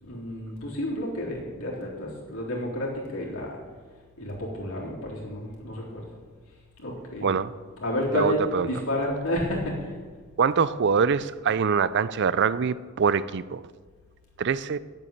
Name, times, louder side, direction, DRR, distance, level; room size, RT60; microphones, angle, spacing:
voice 1, 0.0-3.6 4.2-6.0 6.8-7.3 7.8-10.0, equal, 80° left, -4 dB, 3.8 m, -30 dB
voice 2, 8.1-8.7 10.4-13.6 14.4-14.8, right 6 dB, 55° right, 17 dB, 0.4 m, -24 dB
9.2 x 8.4 x 8.7 m, 1.5 s
head